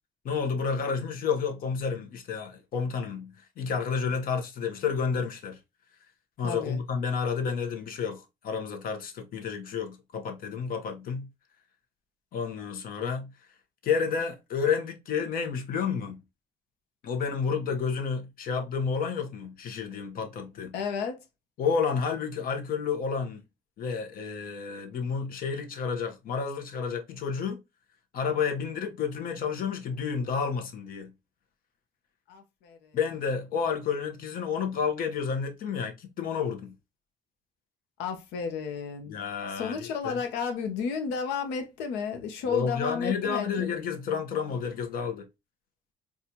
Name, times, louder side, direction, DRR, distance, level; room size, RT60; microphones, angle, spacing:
voice 1, 0.2-5.6 6.4-11.3 12.3-13.3 13.8-16.2 17.0-20.7 21.6-23.4 23.8-27.6 28.1-31.1 32.9-36.7 39.1-40.2 42.5-45.3, left 6 dB, 60° left, 1.0 m, -30 dB
voice 2, 6.4-6.8 20.7-21.2 32.3-33.0 38.0-39.2 39.5-43.9, left 5 dB, 90° left, 0.8 m, -32 dB
4.2 x 2.4 x 2.8 m
cardioid pair, 110°, 17 cm